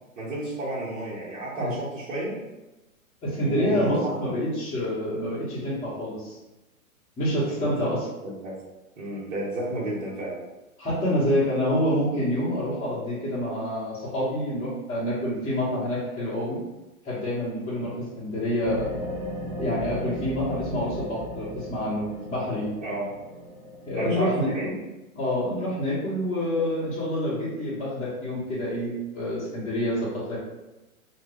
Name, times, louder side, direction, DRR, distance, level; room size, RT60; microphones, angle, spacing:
voice 1, 0.2-2.3 3.4-4.1 7.5-7.9 8.2-8.5 9.0-10.4 22.8-23.1 23.9-24.7, right 1 dB, 55° right, -9 dB, 1.3 m, -31 dB
voice 2, 3.2-6.4 7.2-8.1 10.8-16.6 17.0-18.9 19.6-22.7 23.8-24.8 25.1-30.4, equal, 10° left, -12 dB, 1.1 m, -27 dB
sound 1, 18.6-24.0, left 1 dB, 5° right, 0.4 m, -36 dB
2.6 x 2.3 x 3.5 m, 1.0 s
hypercardioid pair, 125°, 43 cm